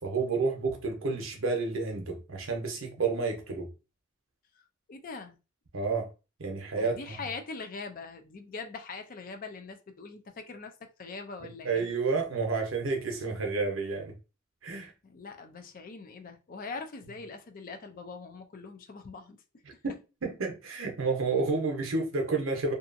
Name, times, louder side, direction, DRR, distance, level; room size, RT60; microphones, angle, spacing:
voice 1, 0.0-3.7 5.7-6.1 6.4-7.1 11.4-14.2 14.6-14.9 19.8-22.7, right 4 dB, 80° right, 0.8 m, -30 dB
voice 2, 4.9-5.4 6.8-10.7 11.0-11.9 15.0-19.4, left 4 dB, 45° left, 0.5 m, -42 dB
2.7 x 2.4 x 2.5 m
head